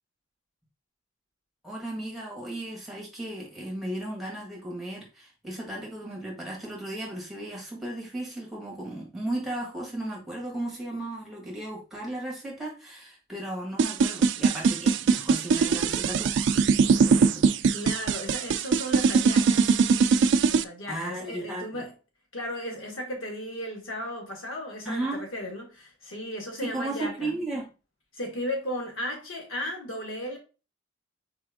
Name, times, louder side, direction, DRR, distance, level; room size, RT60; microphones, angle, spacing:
voice 1, 1.6-17.4 20.9-21.8 24.8-25.3 26.6-27.7, right 1 dB, ahead, 1.5 m, -35 dB
sound 1, 13.8-20.6, right 5 dB, 65° right, 0.3 m, -21 dB
voice 2, 17.7-19.7 20.4-21.9 22.3-27.3 28.1-30.4, equal, 85° left, 1.6 m, -35 dB
4.3 x 3.4 x 3.5 m
head